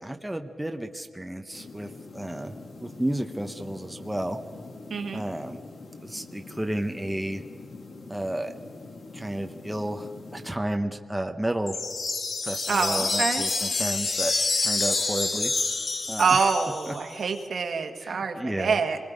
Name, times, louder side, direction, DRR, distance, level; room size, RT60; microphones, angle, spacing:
voice 1, 0.0-4.4 5.1-5.6 6.0-7.4 8.1-8.5 9.1-11.8 12.4-14.3 14.6-15.5 16.1-16.5 16.8-16.9 18.0-18.8, right 1 dB, 5° right, 5 dB, 0.8 m, -32 dB
sound 1, 1.5-10.6, left 3 dB, 80° left, 2.2 m, -44 dB
voice 2, 4.9-5.2 12.7-13.4 16.2-19.0, right 5 dB, 70° right, 5 dB, 1.6 m, -26 dB
sound 2, 11.7-17.1, left 3 dB, 45° left, 1.2 m, -28 dB
26.5 x 20.0 x 5.2 m, 2.4 s
wide cardioid pair, 150°, 0 cm